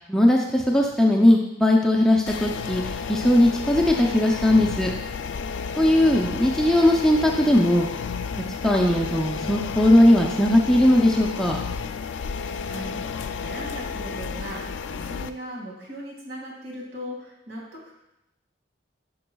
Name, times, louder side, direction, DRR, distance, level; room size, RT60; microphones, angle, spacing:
voice 1, 0.1-4.9 5.8-7.9 8.6-11.6, left 1 dB, 5° left, -1 dB, 0.5 m, -19 dB
sound 1, 2.3-15.3, left 5 dB, 75° left, 0.3 m, -32 dB
voice 2, 12.6-17.9, equal, 65° right, -3 dB, 2.2 m, -38 dB
11.0 x 5.4 x 2.3 m, 0.86 s
head